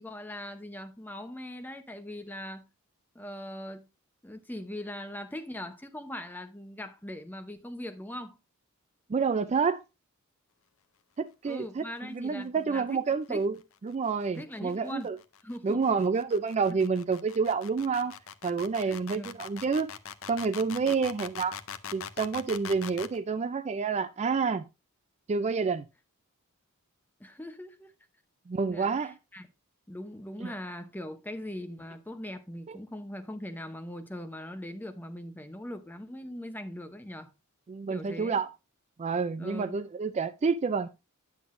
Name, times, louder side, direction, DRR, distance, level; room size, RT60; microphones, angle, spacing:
voice 1, 0.0-2.6 3.1-3.9 4.2-8.4 11.5-13.0 13.3-13.5 14.4-15.1 15.4-16.0 16.7-16.8 18.8-19.4 20.8-20.9 27.2-27.9 28.7-29.5 29.9-37.3 37.9-38.4 39.4-39.8, left 1 dB, 10° left, 0.7 m, -41 dB
voice 2, 9.1-9.8 11.2-13.6 13.8-15.2 15.6-18.1 18.4-19.9 20.3-21.6 21.9-24.6 25.3-25.8 28.5-29.1 30.4-30.5 32.7-32.8 37.7-38.5 39.0-40.9, right 5 dB, 30° right, 0.3 m, -28 dB
sound 1, 13.9-23.2, left 8 dB, 65° left, 0.6 m, -42 dB
9.3 x 7.7 x 2.5 m
head